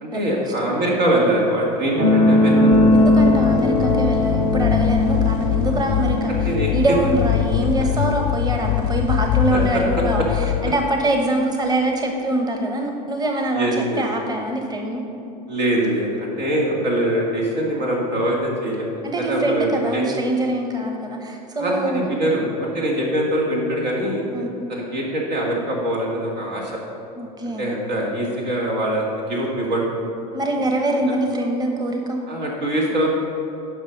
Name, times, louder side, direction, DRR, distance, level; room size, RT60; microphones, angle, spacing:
voice 1, 0.0-2.5 6.3-6.7 9.5-10.0 13.5-14.0 15.5-18.9 19.2-20.0 21.6-24.2 24.7-26.8 27.6-29.9 32.3-33.1, right 1 dB, 80° right, -2 dB, 2.1 m, -23 dB
sound 1, 2.0-9.0 9.9-10.0, left 1 dB, 45° right, 2.1 m, -19 dB
sound 2, 2.7-11.1, left 14 dB, 65° left, 0.4 m, -23 dB
voice 2, 2.9-15.0 19.0-22.2 24.3-24.5 27.2-27.7 30.3-32.2, right 1 dB, 20° right, 3 dB, 1.1 m, -24 dB
9.5 x 5.7 x 5.3 m, 2.7 s
hypercardioid pair, 90°, 21 cm